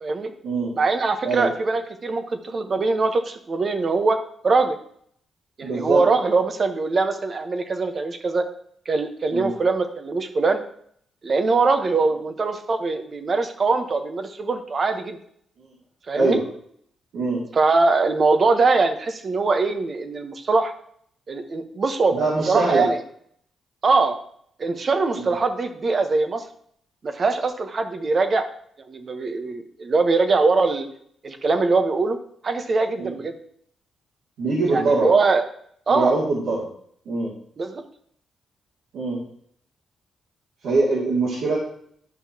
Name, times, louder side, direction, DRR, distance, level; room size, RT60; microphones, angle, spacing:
voice 1, 0.0-0.3 0.7-4.2 4.4-4.7 5.6-8.4 8.9-10.6 11.2-15.2 16.1-16.4 17.5-20.7 21.3-22.2 22.5-23.0 23.8-24.2 24.6-26.4 27.0-28.4 28.9-30.9 31.2-32.2 32.4-33.3 34.7-35.4 35.9-36.1 37.6-37.8, right 3 dB, 45° right, 7 dB, 1.0 m, -22 dB
voice 2, 5.6-6.0 9.3-9.5 15.6-15.7 16.1-16.4 17.1-17.4 22.1-22.9 25.2-25.3 33.0-33.1 34.4-35.1 35.9-36.7 37.1-37.3 38.9-39.2 40.6-41.6, right 3 dB, 80° right, -7 dB, 2.3 m, -23 dB
10.5 x 5.5 x 2.8 m, 0.65 s
cardioid pair, 80°, 0 cm